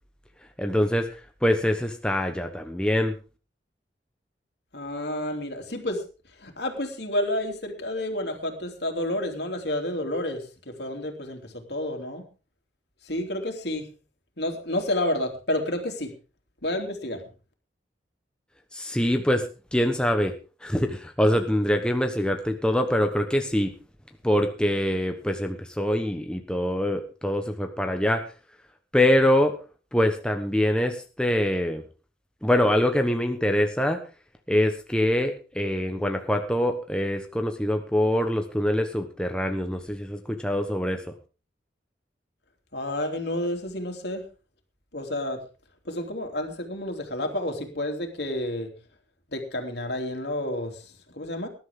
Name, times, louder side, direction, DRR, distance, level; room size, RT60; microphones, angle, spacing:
voice 1, 0.6-1.1 1.4-3.1 18.7-20.3 20.6-23.7 24.2-28.2 28.9-29.6 29.9-31.8 32.4-34.0 34.5-41.0, left 1 dB, 5° left, 4 dB, 1.1 m, -24 dB
voice 2, 4.7-6.0 6.4-12.2 13.0-13.9 14.4-16.1 16.6-17.2 42.7-44.2 44.9-45.4 45.8-48.7 49.3-51.5, left 1 dB, 65° left, 4 dB, 3.1 m, -30 dB
19.0 x 11.5 x 3.7 m, 0.35 s
head